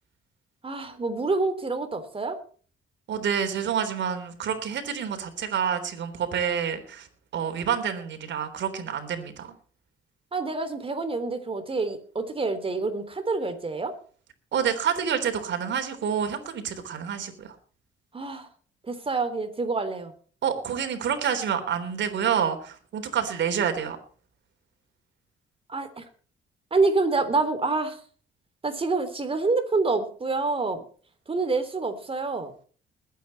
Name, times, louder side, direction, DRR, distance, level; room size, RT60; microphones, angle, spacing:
voice 1, 0.6-2.4 10.3-13.9 18.1-18.5 18.9-20.1 25.7-26.0 26.7-28.0 28.6-30.8 31.3-32.5, right 3 dB, 30° right, 9 dB, 3.3 m, -27 dB
voice 2, 3.1-7.1 7.3-9.5 14.5-17.5 20.4-24.0, right 8 dB, 65° right, 7 dB, 3.8 m, -28 dB
21.0 x 9.3 x 4.3 m, 0.42 s
cardioid pair, 90°, 20 cm